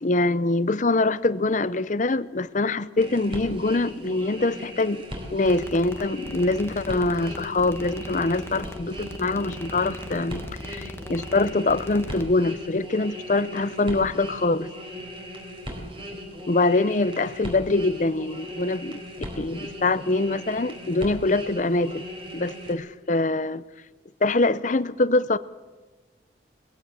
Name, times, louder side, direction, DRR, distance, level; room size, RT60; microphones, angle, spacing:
voice 1, 0.0-5.0 5.3-14.7 16.5-19.0 19.4-22.0 22.3-23.6 24.2-25.4, left 2 dB, 45° left, 16 dB, 0.7 m, -24 dB
sound 1, 3.0-22.7, equal, 30° right, 4.4 m, -38 dB
sound 2, 5.4-12.2, left 1 dB, 15° left, 1.2 m, -40 dB
20.5 x 17.0 x 7.7 m, 1.2 s
head